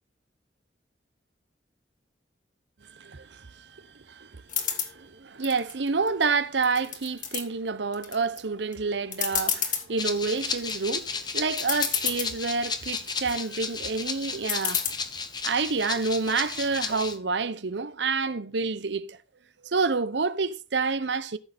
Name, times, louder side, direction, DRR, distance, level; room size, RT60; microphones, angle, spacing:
voice 1, 2.9-4.4 4.9-14.9 15.4-19.2 19.6-21.4, right 4 dB, 85° right, 0.8 m, -28 dB
sound 1, 4.5-4.9 5.4-6.2 6.6-7.4 7.9-8.4 8.7-8.8 9.1-9.8 10.4-10.7 11.3-11.4 11.6-12.3 12.8-13.3 14.5-14.9, left 8 dB, 50° left, 1.8 m, -29 dB
Rattle (instrument), 10.0-17.2, left 5 dB, 25° left, 1.0 m, -34 dB
14.0 x 6.7 x 4.2 m
head